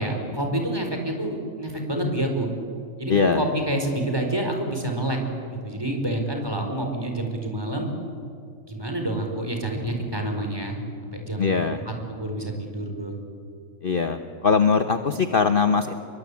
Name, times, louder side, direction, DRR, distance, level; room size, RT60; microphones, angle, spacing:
voice 1, 0.0-2.5 3.0-5.2 5.5-7.9 8.7-13.2, right 1 dB, 15° right, 3 dB, 4.7 m, -28 dB
voice 2, 3.1-3.4 11.4-11.8 13.8-15.9, left 5 dB, 45° left, 7 dB, 1.1 m, -21 dB
30.0 x 23.5 x 8.5 m, 2.3 s
omnidirectional pair, 1.5 m